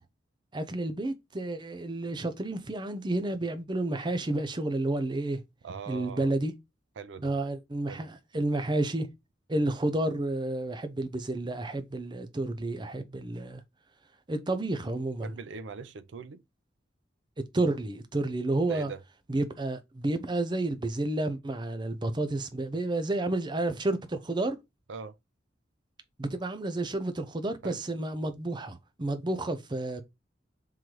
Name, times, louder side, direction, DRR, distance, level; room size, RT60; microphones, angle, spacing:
voice 1, 0.5-5.4 5.9-6.5 7.2-9.1 9.5-13.6 14.3-15.3 17.5-18.9 19.3-24.6 26.2-30.0, right 2 dB, 25° right, 0.6 m, -30 dB
voice 2, 5.6-6.3 7.0-7.3 7.9-8.0 14.9-16.4 18.7-19.0 24.9-25.1 27.6-27.8, right 5 dB, 90° right, 0.5 m, -41 dB
3.8 x 3.1 x 4.5 m
head